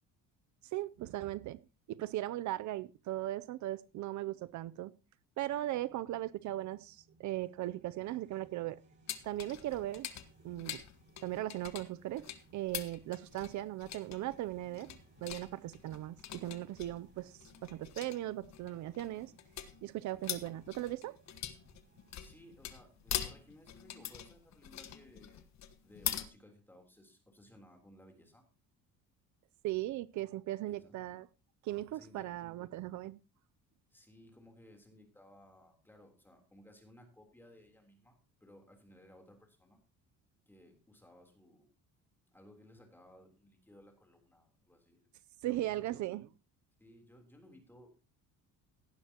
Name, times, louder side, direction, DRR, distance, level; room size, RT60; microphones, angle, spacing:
voice 1, 0.7-1.6 1.9-4.9 5.4-8.8 9.2-10.1 10.4-10.8 11.2-12.3 12.5-17.3 17.6-19.3 19.8-21.1 29.6-31.3 31.6-33.2 45.4-46.3, right 15 dB, 55° right, 0.5 m, -38 dB
sound 1, 5.4-25.2, right 2 dB, 30° right, 6.5 m, -66 dB
sound 2, 9.1-26.3, left 11 dB, 50° left, 1.3 m, -43 dB
voice 2, 22.2-25.5 25.8-28.4 30.7-30.9 31.9-32.3 33.9-39.8 40.5-41.7 42.3-45.1 45.4-46.1 46.8-48.0, left 1 dB, 5° left, 3.4 m, -59 dB
17.0 x 11.0 x 2.9 m
cardioid pair, 145°, 35 cm